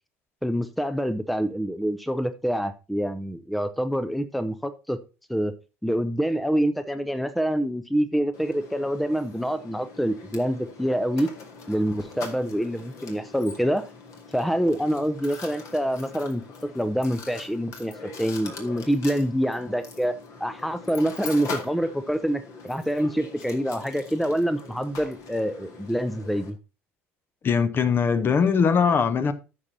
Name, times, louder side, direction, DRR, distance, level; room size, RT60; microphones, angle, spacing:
voice 1, 0.4-5.0 5.3-5.5 5.8-11.3 11.7-13.9 14.3-16.4 16.7-26.6, equal, ahead, 0.7 m, -26 dB
Mechanisms, 8.3-26.5, left 4 dB, 50° left, 2.0 m, -42 dB
voice 2, 27.4-29.3, left 6 dB, 30° left, 0.9 m, -21 dB
14.5 x 6.0 x 2.8 m
figure-of-eight pair, 60°, 7 cm